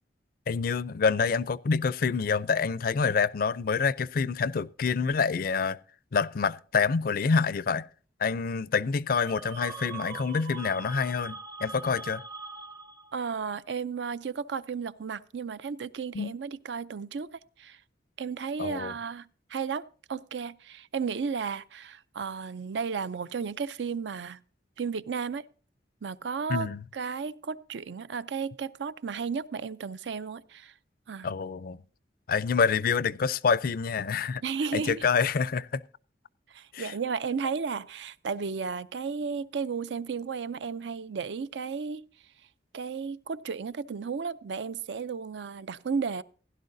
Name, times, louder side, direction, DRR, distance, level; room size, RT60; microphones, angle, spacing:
voice 1, 0.5-5.8 6.1-7.9 8.2-12.2 16.1-16.3 18.6-18.9 26.5-26.8 31.2-31.8 32.3-34.4 34.7-35.8 36.7-36.9, left 5 dB, 55° left, 0.4 m, -27 dB
sound 1, 9.1-13.3, right 5 dB, 20° right, 0.6 m, -42 dB
voice 2, 13.1-17.3 17.6-17.8 18.2-24.4 24.8-25.4 26.0-30.7 31.1-31.3 34.4-35.0 36.5-42.0 42.7-46.2, right 5 dB, 80° right, 0.5 m, -34 dB
16.0 x 11.5 x 2.6 m
head